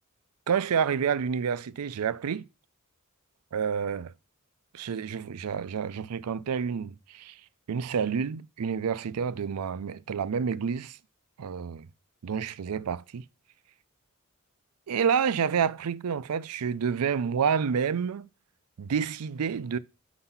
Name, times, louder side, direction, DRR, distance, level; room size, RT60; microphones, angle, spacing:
voice 1, 0.5-2.4 3.5-4.1 4.7-7.3 7.7-11.0 11.4-11.9 12.2-13.2 14.9-18.3 18.8-19.8, right 7 dB, 90° right, 0.4 m, -29 dB
5.7 x 4.0 x 5.6 m
head